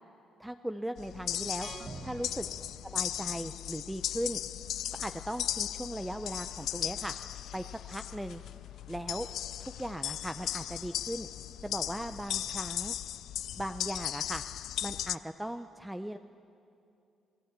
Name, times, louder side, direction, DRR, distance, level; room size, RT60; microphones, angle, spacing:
voice 1, 0.4-1.7 2.0-2.5 2.8-4.4 4.9-7.1 7.5-8.4 8.9-9.3 9.6-11.3 11.6-12.9 13.6-14.4 14.8-16.2, right 1 dB, 5° right, 8 dB, 0.7 m, -38 dB
sound 1, 1.0-15.2, left 11 dB, 75° left, 0.4 m, -37 dB
sound 2, 1.6-3.6, right 4 dB, 40° right, 1.4 m, -47 dB
27.0 x 17.0 x 8.2 m, 2.6 s
cardioid pair, 90°, 0 cm